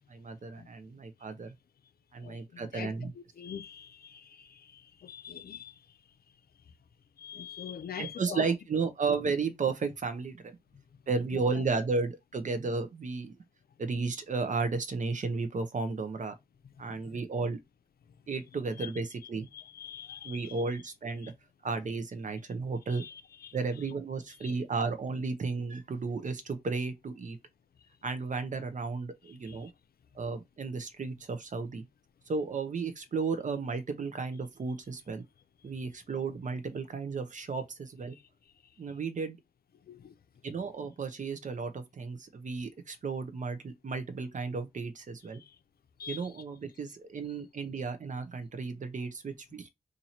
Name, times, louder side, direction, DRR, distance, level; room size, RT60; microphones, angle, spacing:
voice 1, 0.1-1.5 2.1-3.1 8.0-10.5 11.1-13.3 13.8-16.3 16.8-17.6 18.3-19.5 20.2-21.3 21.6-23.0 23.5-27.4 28.0-29.7 30.2-31.8 32.3-35.2 35.6-38.2 38.8-39.4 40.4-45.4 46.1-49.7, right 4 dB, 55° right, 0.6 m, -33 dB
voice 2, 2.2-5.8 7.2-8.5 11.3-11.6 16.9-17.2 18.8-18.9 19.5-20.6 21.2-21.3 22.9-23.6 24.4-24.5 29.2-29.7 38.1-38.2 39.9-40.1 45.3-45.6 46.0-46.3, left 8 dB, 80° left, 0.5 m, -45 dB
2.9 x 2.6 x 4.1 m
wide cardioid pair, 135°, 16 cm